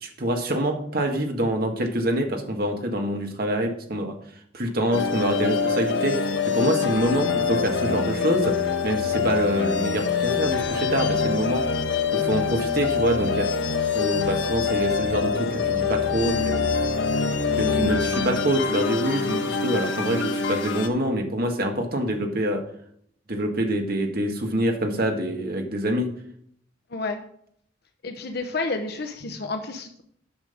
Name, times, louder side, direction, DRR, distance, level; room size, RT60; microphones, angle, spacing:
voice 1, 0.0-4.1 4.5-8.5 8.8-11.6 12.1-13.5 13.9-16.6 17.5-22.6 23.3-26.1 29.2-29.3, right 1 dB, 55° right, 3 dB, 1.8 m, -26 dB
sound 1, 4.9-20.9, left 5 dB, 90° left, 1.1 m, -25 dB
voice 2, 28.0-30.0, left 3 dB, 60° left, 5 dB, 1.0 m, -30 dB
10.5 x 6.5 x 5.2 m, 0.67 s
head